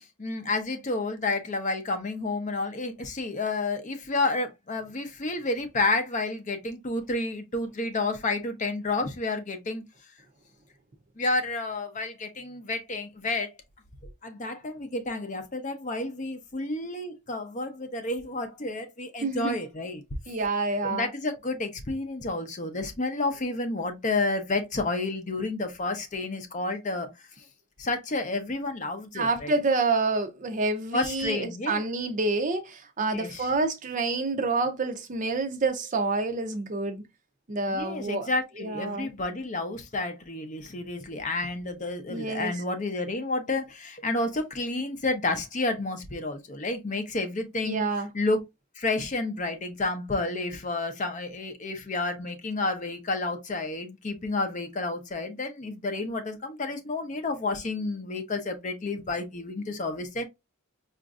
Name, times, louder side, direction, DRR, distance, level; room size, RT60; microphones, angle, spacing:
voice 1, 0.0-9.8 11.2-13.5 14.2-20.0 20.3-20.4 20.8-27.1 27.8-29.5 30.9-31.8 33.1-33.5 37.7-47.8 48.1-48.4 48.8-60.2, left 2 dB, 35° left, 0.6 m, -30 dB
voice 2, 19.2-19.6 20.3-21.1 29.1-37.0 37.5-38.3 38.6-39.1 42.1-42.6 47.6-48.1, right 3 dB, 35° right, 0.5 m, -28 dB
5.0 x 2.5 x 2.4 m
head